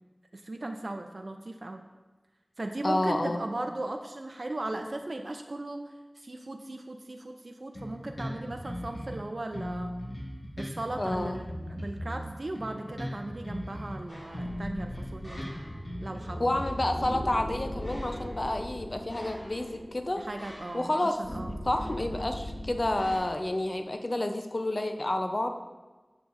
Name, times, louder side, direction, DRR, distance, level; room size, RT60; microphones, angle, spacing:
voice 1, 0.5-1.8 2.6-5.8 6.2-9.9 10.6-15.4 16.0-16.4 20.2-21.5, right 2 dB, 65° right, 4 dB, 0.4 m, -37 dB
voice 2, 2.8-3.4 11.0-11.4 16.4-20.2 20.7-21.1 21.6-25.5, left 1 dB, 55° left, 5 dB, 0.5 m, -29 dB
Bass guitar, 7.7-9.2 9.5-14.0 14.3-17.3, equal, 85° left, 1.6 m, -38 dB
sound 1, 14.1-23.2, equal, 20° left, 2.1 m, -40 dB
7.0 x 6.7 x 2.5 m, 1.2 s
wide cardioid pair, 55°, 0 cm